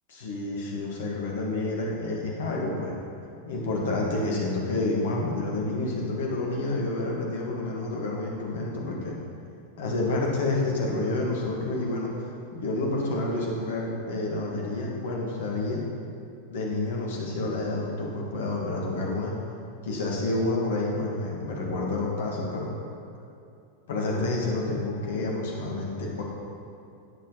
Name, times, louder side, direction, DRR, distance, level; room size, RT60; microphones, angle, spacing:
voice 1, 0.1-3.0 3.5-9.2 9.8-15.8 16.5-19.3 19.8-22.7 23.9-26.2, left 2 dB, 60° left, -2 dB, 2.3 m, -29 dB
17.0 x 7.5 x 4.2 m, 2.6 s
figure-of-eight pair, 90°, 0 cm